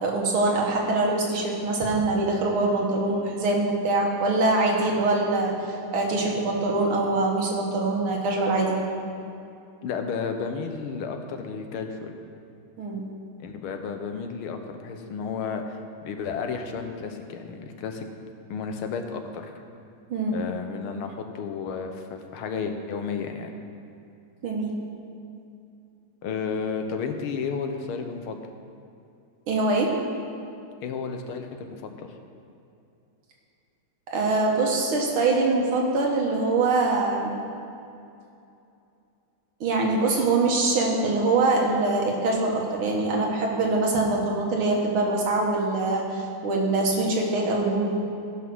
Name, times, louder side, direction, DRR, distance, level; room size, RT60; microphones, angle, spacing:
voice 1, 0.0-8.8 12.8-13.0 20.1-20.4 24.4-24.7 29.5-29.9 34.1-37.4 39.6-47.9, right 2 dB, 85° right, -1 dB, 2.3 m, -24 dB
voice 2, 9.8-12.1 13.4-15.8 16.0-18.1 18.5-19.5 20.3-23.5 26.2-28.4 30.8-32.1, left 5 dB, 90° left, 5 dB, 1.8 m, -32 dB
14.5 x 5.9 x 6.1 m, 2.6 s
omnidirectional pair, 2.3 m